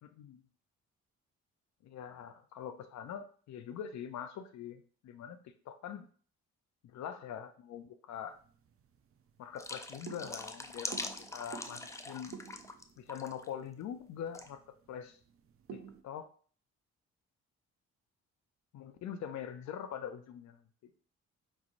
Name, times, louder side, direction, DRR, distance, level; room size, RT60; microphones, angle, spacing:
voice 1, 0.0-0.4 1.8-6.1 6.8-8.4 9.4-12.4 13.0-14.6 14.9-15.2 15.7-16.3 18.7-20.9, left 8 dB, 65° left, 9 dB, 0.6 m, -43 dB
sound 1, 8.1-16.0, right 8 dB, 50° right, 0.5 m, -53 dB
sound 2, 9.5-12.8 13.1-13.5 14.3-14.5, left 2 dB, 10° left, 0.3 m, -43 dB
5.4 x 3.1 x 2.6 m, 0.44 s
cardioid pair, 90°, 30 cm